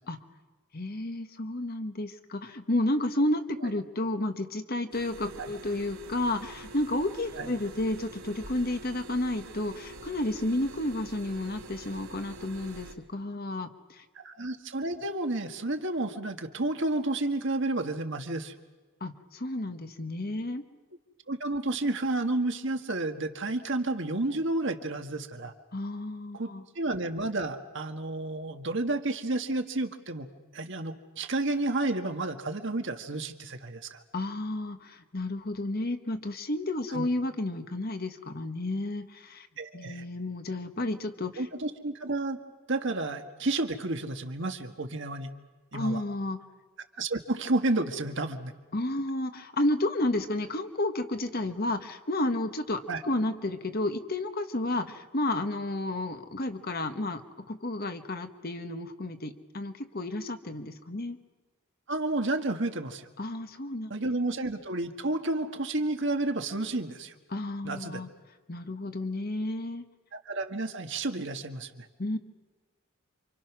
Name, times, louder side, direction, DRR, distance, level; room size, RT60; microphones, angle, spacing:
voice 1, 0.7-14.0 19.0-20.6 25.7-26.6 34.1-39.5 39.7-41.4 45.7-46.4 48.7-57.2 57.5-61.2 63.2-63.9 67.3-68.1 68.5-69.8 72.0-72.2, left 1 dB, 45° left, 8 dB, 1.5 m, -31 dB
sound 1, 4.9-12.9, right 2 dB, 75° right, 3.5 m, -46 dB
voice 2, 14.2-18.5 21.3-25.5 26.3-30.3 30.5-34.0 36.9-37.1 39.6-40.0 41.4-42.4 42.7-45.3 45.7-46.0 47.0-48.5 52.9-53.0 61.9-63.1 63.9-67.1 67.6-68.0 70.1-71.9, right 2 dB, 55° right, 6 dB, 1.8 m, -31 dB
28.5 x 26.0 x 6.2 m, 1.3 s
head